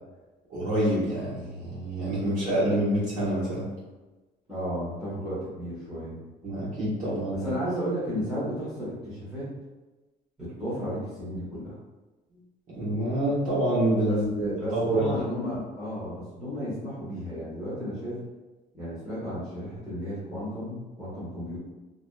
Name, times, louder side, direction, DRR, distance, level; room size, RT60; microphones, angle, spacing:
voice 1, 0.5-3.7 6.4-7.5 12.7-15.1, right 1 dB, 50° right, -9 dB, 1.1 m, -27 dB
voice 2, 4.5-6.2 7.3-9.5 10.4-11.7 14.1-18.2 18.7-21.6, equal, 5° right, -13 dB, 1.1 m, -33 dB
2.6 x 2.2 x 2.2 m, 1.1 s
cardioid pair, 110°, 17 cm